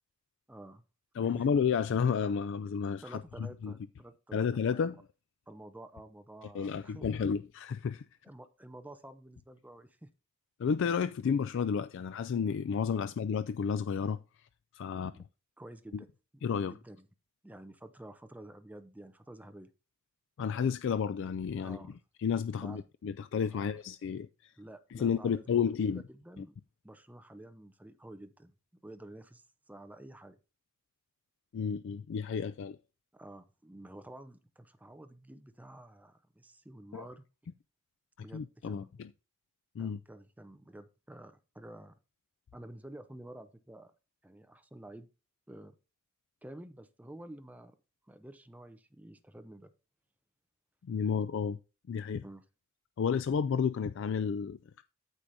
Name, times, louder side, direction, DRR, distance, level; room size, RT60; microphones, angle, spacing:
voice 1, 0.5-0.8 1.1-1.5 3.0-4.9 5.5-7.1 8.2-10.1 14.9-15.2 15.6-16.1 16.3-17.1 17.4-19.7 21.6-22.0 22.6-22.8 23.5-23.8 24.6-26.6 26.8-28.5 28.8-30.4 33.1-37.2 38.2-38.9 39.8-42.0 42.5-43.9 44.2-45.1 45.5-45.8 46.4-47.7 48.1-49.7 52.2-52.4, right 1 dB, 10° right, 0.6 m, -50 dB
voice 2, 1.1-3.7 4.3-5.0 6.5-8.0 10.6-14.5 14.7-15.2 15.9-16.0 16.4-16.7 20.4-21.8 22.2-24.5 24.9-26.0 26.4-26.5 31.5-32.8 36.9-37.1 38.3-39.1 39.8-40.0 50.8-51.6 51.9-52.2 53.0-54.8, left 6 dB, 60° left, 0.3 m, -31 dB
14.5 x 4.9 x 2.7 m
head